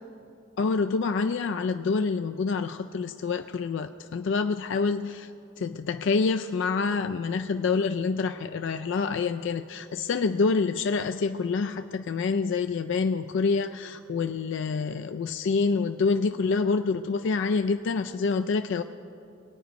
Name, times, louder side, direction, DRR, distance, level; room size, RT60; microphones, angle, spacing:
voice 1, 0.6-5.3 5.6-18.8, left 4 dB, 60° left, 7 dB, 0.4 m, -27 dB
22.5 x 9.1 x 5.2 m, 2.6 s
head